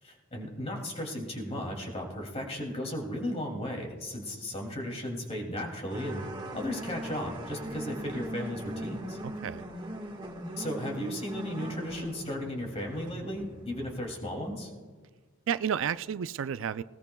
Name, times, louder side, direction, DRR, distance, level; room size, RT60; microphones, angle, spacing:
voice 1, 0.0-6.3 6.5-9.2 10.6-14.7, left 1 dB, 30° left, 1 dB, 2.5 m, -35 dB
sound 1, 5.9-14.3 14.6-14.7 15.8-15.9, right 1 dB, 25° right, 1.4 m, -40 dB
voice 2, 9.2-9.7 15.5-16.8, right 8 dB, 65° right, 14 dB, 0.4 m, -31 dB
19.5 x 18.0 x 2.3 m, 1.5 s
head